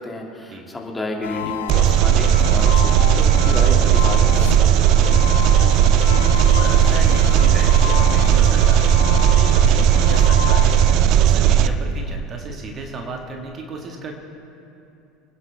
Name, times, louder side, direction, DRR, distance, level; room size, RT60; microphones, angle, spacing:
voice 1, 0.0-5.1, left 2 dB, 10° left, 0 dB, 2.3 m, -31 dB
sound 1, 1.2-10.9, left 12 dB, 75° left, 0.4 m, -29 dB
Engine, 1.7-11.7, right 10 dB, 55° right, 0.5 m, -15 dB
voice 2, 5.5-14.1, right 2 dB, 35° right, 2 dB, 1.8 m, -34 dB
25.0 x 9.9 x 3.5 m, 2.7 s
figure-of-eight pair, 70°, 0 cm